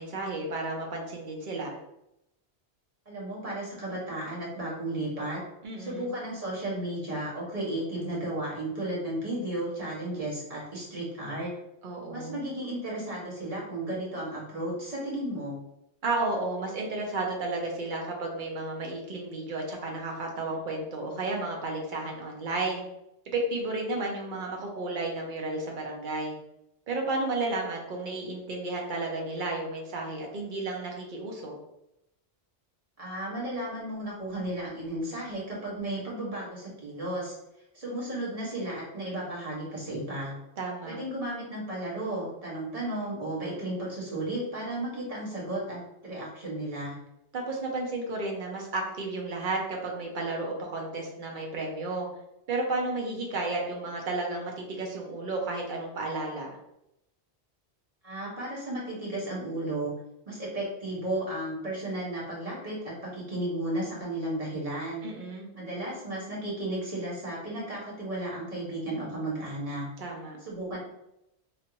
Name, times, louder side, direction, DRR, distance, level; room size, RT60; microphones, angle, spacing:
voice 1, 0.0-1.7 5.6-6.1 11.8-12.4 16.0-22.8 23.3-26.3 26.9-31.5 40.6-41.0 47.3-52.1 52.5-56.5 65.0-65.5 70.0-70.4, right 2 dB, 50° right, 0 dB, 0.8 m, -32 dB
voice 2, 3.1-5.4 5.8-11.5 12.1-15.6 33.0-37.3 37.7-40.3 40.9-47.0 58.0-59.9 60.3-65.1 65.5-69.9 70.4-70.8, right 1 dB, 35° right, -6 dB, 1.2 m, -34 dB
3.2 x 2.5 x 2.8 m, 0.85 s
omnidirectional pair, 1.2 m